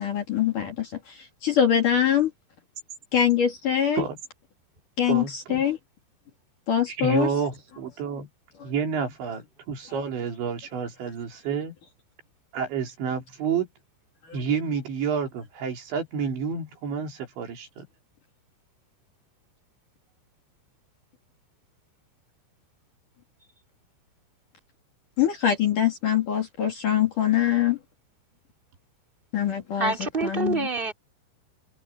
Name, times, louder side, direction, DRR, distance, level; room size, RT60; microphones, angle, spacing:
voice 1, 0.0-2.3 3.1-4.0 5.0-5.8 6.7-7.3 8.6-8.7 14.3-14.4 25.2-27.8 29.3-30.7, left 9 dB, 45° left, 3.9 m, -24 dB
voice 2, 5.1-5.6 6.9-8.3 8.6-11.7 12.5-13.7 14.3-17.9, right 6 dB, 65° right, 5.8 m, -29 dB
voice 3, 29.8-30.9, right 3 dB, 10° right, 4.1 m, -26 dB
omnidirectional pair, 5.7 m